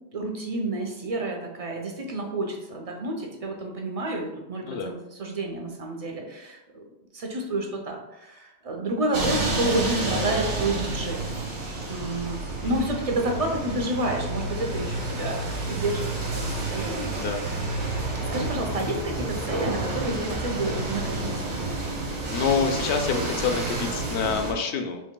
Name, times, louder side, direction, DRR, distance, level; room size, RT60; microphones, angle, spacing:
voice 1, 0.1-6.8 7.1-11.2 11.9-17.2 18.2-21.8, right 2 dB, 40° right, 1 dB, 0.7 m, -30 dB
sound 1, 9.1-24.5, right 2 dB, 80° right, 1.4 m, -30 dB
voice 2, 22.3-25.0, left 5 dB, 80° left, 5 dB, 0.9 m, -26 dB
5.9 x 3.0 x 2.2 m, 0.94 s
omnidirectional pair, 1.1 m